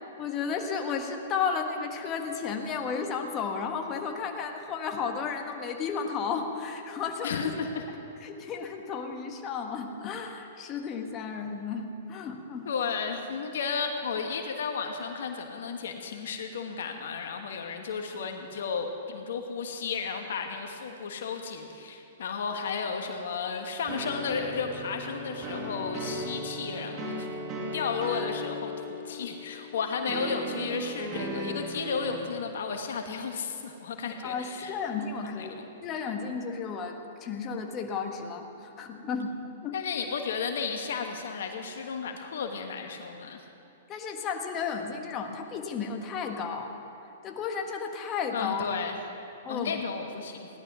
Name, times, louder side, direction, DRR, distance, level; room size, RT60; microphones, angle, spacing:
voice 1, 0.2-7.6 8.2-12.7 34.2-39.3 39.6-39.8 43.9-46.7 47.2-48.9 49.4-49.8, left 5 dB, 30° left, 3 dB, 1.5 m, -33 dB
voice 2, 7.2-7.8 12.6-27.3 27.7-35.7 39.7-43.4 48.3-49.0 49.5-50.5, left 5 dB, 70° left, 5 dB, 1.3 m, -33 dB
sound 1, 23.9-32.2, equal, 35° right, 2.3 m, -36 dB
16.5 x 11.5 x 6.1 m, 2.8 s
hypercardioid pair, 120°, 0 cm